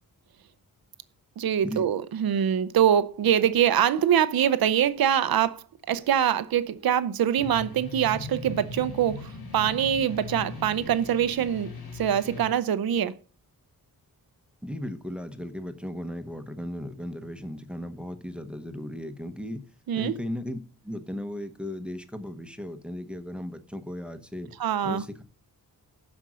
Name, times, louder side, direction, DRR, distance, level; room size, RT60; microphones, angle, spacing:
voice 1, 1.4-13.1 19.9-20.1 24.6-25.0, right 9 dB, 80° right, 0.7 m, -24 dB
sound 1, 7.4-12.5, left 3 dB, 85° left, 4.2 m, -39 dB
voice 2, 14.6-19.6 19.9-20.6 20.8-24.5 24.8-25.2, left 1 dB, 5° right, 0.9 m, -36 dB
12.5 x 5.3 x 6.2 m
wide cardioid pair, 170°, 36 cm